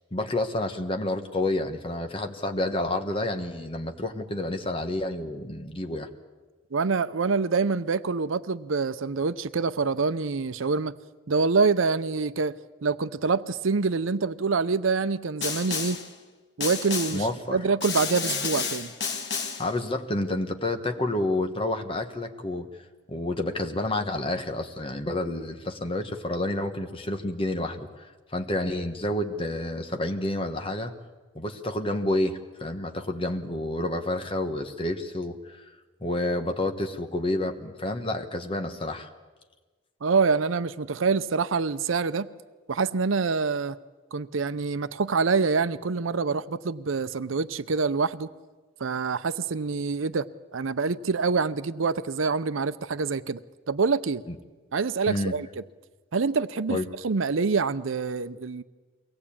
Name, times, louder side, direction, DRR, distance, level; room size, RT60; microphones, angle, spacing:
voice 1, 0.1-6.1 17.1-17.6 19.6-22.7 23.1-28.1 28.3-30.9 31.3-35.6 36.0-39.1 54.3-54.4 55.1-55.4 56.7-56.8, left 1 dB, 25° left, 6 dB, 1.3 m, -29 dB
voice 2, 6.7-10.9 11.3-12.5 12.8-16.0 16.6-18.9 40.0-42.3 42.7-43.8 44.1-48.3 48.8-50.3 50.5-53.4 53.7-54.2 54.7-55.6 56.1-56.8 57.0-58.6, right 4 dB, 85° right, 14 dB, 0.6 m, -26 dB
Snare drum, 15.4-16.1 16.6-17.3 17.8-19.7, left 5 dB, 60° left, 1.9 m, -31 dB
23.0 x 17.5 x 8.7 m, 1.3 s
head